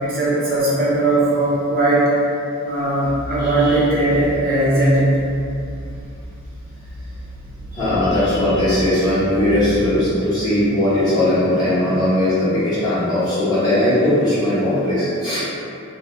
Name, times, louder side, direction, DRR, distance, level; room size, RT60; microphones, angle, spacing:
voice 1, 0.0-2.1 2.6-5.1, right 2 dB, 40° right, -8 dB, 0.7 m, -18 dB
sound 1, 3.0-10.1, equal, 70° left, 0.4 m, -34 dB
voice 2, 3.4-3.8 7.7-15.4, left 1 dB, 20° left, -13 dB, 0.8 m, -19 dB
2.3 x 2.2 x 2.9 m, 2.6 s
head